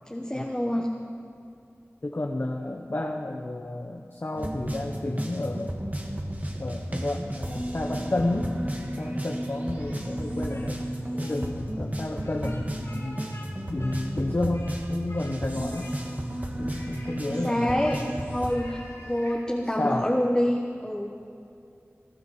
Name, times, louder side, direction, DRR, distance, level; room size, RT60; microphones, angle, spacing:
voice 1, 0.1-0.9 17.2-18.0 18.3-21.3, equal, 15° left, 0 dB, 1.1 m, -27 dB
voice 2, 2.0-5.8 6.6-8.6 9.0-10.8 11.1-13.2 13.7-15.9 16.6-17.9 19.8-20.1, left 2 dB, 50° left, 3 dB, 0.9 m, -31 dB
sound 1, 4.3-18.5, right 1 dB, 35° right, 1.7 m, -33 dB
Speech, 9.7-10.7 11.0-11.4 12.2-13.5 13.8-14.8 15.1-15.4 15.7-16.3 16.7-19.4, left 1 dB, 80° left, 4.8 m, -48 dB
20.0 x 12.5 x 4.9 m, 2.6 s
wide cardioid pair, 55°, 5 cm